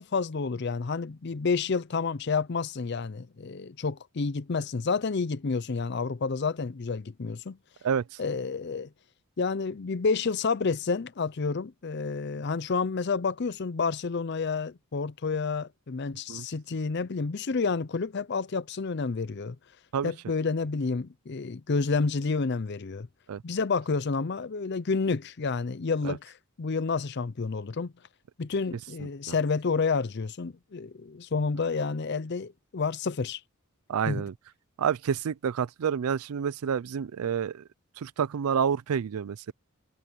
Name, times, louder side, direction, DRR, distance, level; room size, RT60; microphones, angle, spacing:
voice 1, 0.0-7.6 8.2-8.9 9.4-19.6 20.0-23.1 23.4-27.9 28.4-33.4 34.1-34.2, left 4 dB, 50° left, 0.5 m, -29 dB
voice 2, 33.9-34.3 34.8-37.6 38.0-39.5, right 7 dB, 90° right, 0.4 m, -28 dB
head